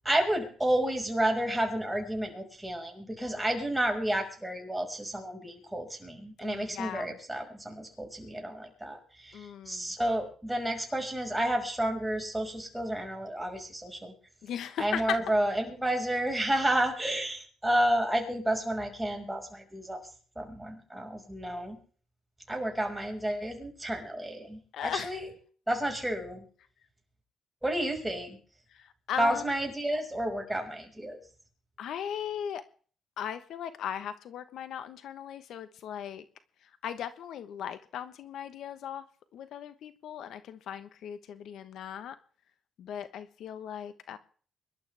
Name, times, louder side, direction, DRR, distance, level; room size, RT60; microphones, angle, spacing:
voice 1, 0.0-14.1 14.8-20.0 20.4-21.8 22.5-25.3 25.7-26.4 27.6-28.4 29.2-31.2, right 1 dB, 10° right, 1 dB, 5.7 m, -31 dB
voice 2, 6.4-7.2 9.3-9.9 14.4-15.2 24.7-25.2 28.7-29.5 31.8-32.6 33.2-36.2 36.8-39.0 39.3-42.2 42.8-44.2, left 9 dB, 75° left, 12 dB, 1.2 m, -37 dB
24.5 x 12.0 x 3.5 m, 0.43 s
cardioid pair, 90°, 0 cm